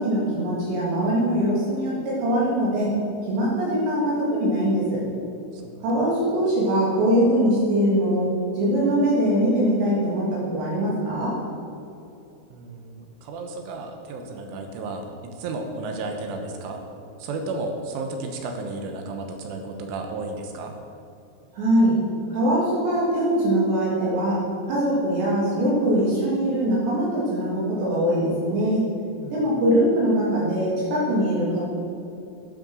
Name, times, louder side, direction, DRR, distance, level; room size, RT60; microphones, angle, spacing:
voice 1, 0.0-2.9 3.2-5.0 5.8-8.3 8.5-11.3 21.5-21.9 22.3-24.4 24.7-28.8 29.3-31.6, equal, 60° right, -6 dB, 4.9 m, -22 dB
voice 2, 12.5-15.1 15.4-16.8 17.2-20.7 29.2-29.5, right 3 dB, 80° right, 3 dB, 3.5 m, -33 dB
12.0 x 8.8 x 6.4 m, 2.8 s
omnidirectional pair, 5.8 m